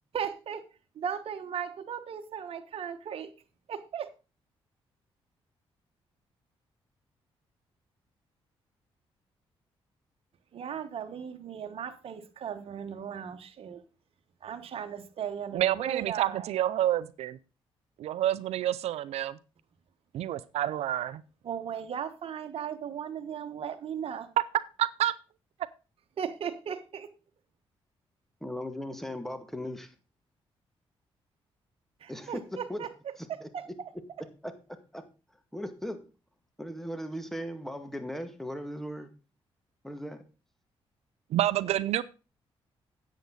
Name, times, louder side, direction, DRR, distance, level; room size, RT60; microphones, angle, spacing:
voice 1, 0.1-0.6 0.9-3.3 3.7-4.1 10.5-13.8 14.4-16.5 21.4-24.3 26.2-27.1 32.0-33.9, right 8 dB, 65° right, 1.3 m, -37 dB
voice 2, 15.5-17.4 18.0-19.4 20.1-21.2 24.8-25.1 41.3-42.0, right 12 dB, 80° right, 0.5 m, -28 dB
voice 3, 28.4-29.9 32.1-32.9 33.2-33.5 34.4-34.5 34.9-35.0 35.5-36.0 36.6-39.1 39.8-40.2, equal, 5° left, 1.9 m, -37 dB
10.5 x 8.3 x 3.9 m
cardioid pair, 70°, 11 cm